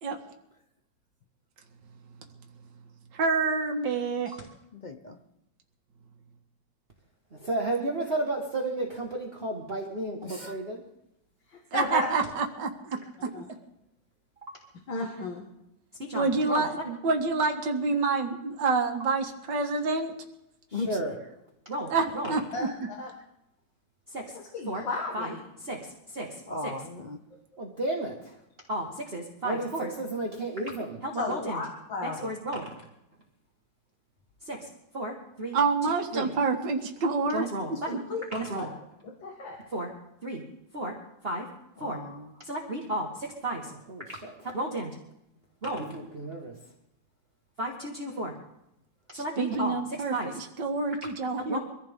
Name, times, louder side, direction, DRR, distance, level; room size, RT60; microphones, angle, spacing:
voice 1, 3.1-4.3 11.7-13.0 16.1-16.8 17.0-20.1 21.9-22.7 35.5-38.0 49.1-51.6, right 4 dB, 65° right, 2 dB, 2.1 m, -27 dB
voice 2, 4.7-5.2 10.2-10.6 20.7-21.0 26.5-27.2 41.8-42.3, left 2 dB, 40° left, 5 dB, 0.6 m, -37 dB
voice 3, 7.4-10.8 16.1-16.9 20.7-21.1 21.7-21.9 22.1-22.3 24.1-24.2 24.7-24.8 25.1-25.3 25.6-25.8 26.1-26.3 26.6-26.7 27.6-28.3 28.7-31.6 32.0-32.7 34.5-34.6 34.9-35.6 35.9-36.3 37.3-38.0 38.3-38.7 39.7-39.9 40.2-40.4 40.7-40.9 41.2-41.4 41.8-42.0 42.4-43.1 43.4-44.9 45.6-46.5 47.6-48.3 49.1-49.8 50.1-50.3 51.5-51.6, right 1 dB, 30° right, -1 dB, 1.8 m, -32 dB
voice 4, 11.5-12.1 13.3-13.5 14.9-15.4 22.5-22.6 23.0-23.1 24.5-25.4 31.2-32.3 37.9-38.7 39.0-39.6, left 3 dB, 75° left, 0 dB, 2.5 m, -34 dB
24.0 x 15.0 x 3.7 m, 0.85 s
omnidirectional pair, 2.1 m